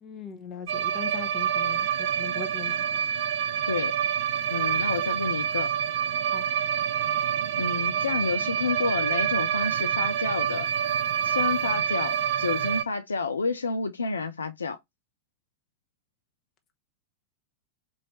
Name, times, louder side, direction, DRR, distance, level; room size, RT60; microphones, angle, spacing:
voice 1, 0.0-2.9 6.3-6.5, left 7 dB, 30° left, 1.0 m, -40 dB
sound 1, 0.7-12.8, right 9 dB, 55° right, 0.4 m, -27 dB
voice 2, 4.5-5.7 7.6-10.7 11.2-14.8, left 4 dB, 75° left, 0.5 m, -30 dB
4.4 x 2.7 x 3.1 m
figure-of-eight pair, 90°, 0 cm